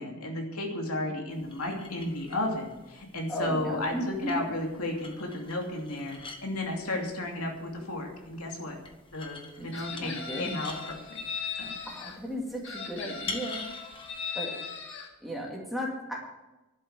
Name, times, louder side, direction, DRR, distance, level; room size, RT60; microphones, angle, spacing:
voice 1, 0.0-8.8 9.1-10.1 10.4-11.2 11.6-11.8, left 1 dB, 85° left, 1 dB, 2.8 m, -33 dB
sound 1, 1.3-14.3, left 3 dB, 25° left, 1.1 m, -47 dB
voice 2, 3.3-4.4 9.6-10.5 11.8-13.6 14.3-14.6 15.2-16.2, equal, ahead, -2 dB, 2.5 m, -35 dB
Chicken rooster, 9.7-12.2 12.6-15.1, left 5 dB, 55° left, 2.0 m, -38 dB
11.5 x 7.8 x 9.1 m, 1.0 s
head